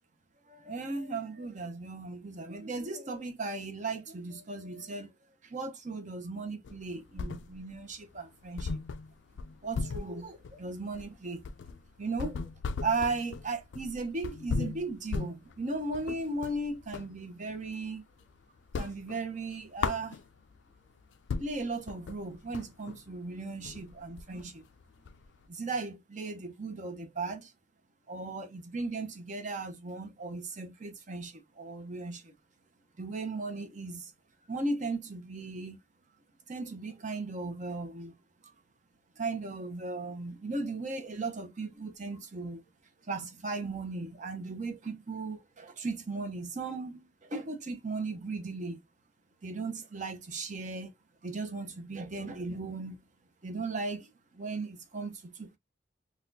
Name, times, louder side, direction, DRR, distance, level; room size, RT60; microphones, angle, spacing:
voice 1, 0.5-5.1 5.4-8.8 9.6-11.5 12.0-12.4 12.8-18.0 18.8-20.2 21.4-24.6 25.5-27.5 28.1-32.3 33.0-34.1 34.5-35.8 36.5-38.1 39.2-42.6 43.1-48.8 49.4-50.9 51.2-53.0 53.4-55.6, right 3 dB, 40° right, 0.8 m, -37 dB
sound 1, 6.6-7.8 8.1-8.2 8.6-17.2 17.5-18.3 18.6-20.6 21.0-21.1 21.3-25.4, left 4 dB, 80° left, 0.4 m, -37 dB
4.0 x 2.4 x 2.6 m
head